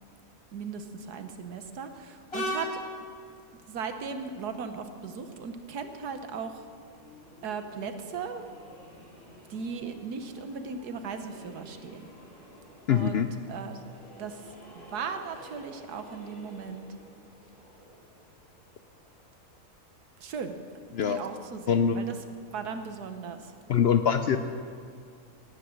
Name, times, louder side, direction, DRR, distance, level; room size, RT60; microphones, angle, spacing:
voice 1, 0.5-2.8 3.5-6.7 7.4-8.4 9.5-12.1 12.9-13.8 14.2-16.9 20.2-20.5 21.0-22.2 22.5-23.5, right 5 dB, 85° right, 8 dB, 1.6 m, -37 dB
Train, 2.3-19.6, left 1 dB, 40° left, 4.0 m, -45 dB
voice 2, 12.9-13.3 20.9-21.2 21.7-22.0 23.7-24.4, left 8 dB, 70° left, 9 dB, 0.6 m, -23 dB
18.0 x 10.0 x 6.4 m, 2.3 s
omnidirectional pair, 1.6 m